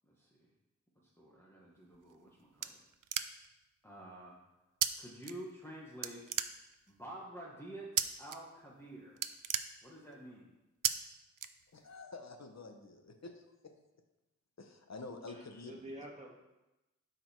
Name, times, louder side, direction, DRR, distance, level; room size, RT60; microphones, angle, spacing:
voice 1, 0.1-0.5 1.2-2.8 3.8-4.4 5.0-6.3 6.9-9.2 9.8-10.5, right 1 dB, 10° left, -5 dB, 1.8 m, -49 dB
sound 1, 1.9-3.6 4.8-4.9 5.2-5.7 6.0-7.0 8.0-8.4 8.7-8.8 9.1-10.3 10.8-10.9 11.4-12.0, right 8 dB, 90° right, 0.5 m, -35 dB
voice 2, 11.7-13.8 14.6-15.9, left 3 dB, 60° left, 5 dB, 1.1 m, -49 dB
voice 3, 15.3-16.3, right 1 dB, 20° right, -4 dB, 2.5 m, -48 dB
12.0 x 5.2 x 4.6 m, 0.99 s
wide cardioid pair, 80°, 30 cm